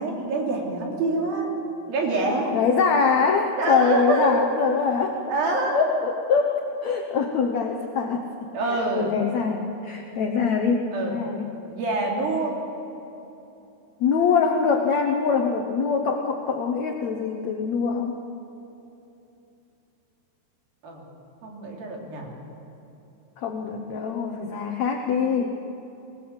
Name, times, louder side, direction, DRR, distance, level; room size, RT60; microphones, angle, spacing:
voice 1, 0.0-1.5 1.9-2.5 3.6-4.6 5.3-5.8 8.5-9.1 10.9-11.2 11.7-12.5 20.8-21.1 21.4-22.3, right 2 dB, 65° right, -1 dB, 4.7 m, -26 dB
voice 2, 2.5-5.2 5.7-8.2 8.7-11.5 14.0-18.2 23.4-25.5, left 5 dB, 70° left, 3 dB, 1.7 m, -24 dB
21.5 x 19.0 x 8.1 m, 2.9 s
omnidirectional pair, 4.6 m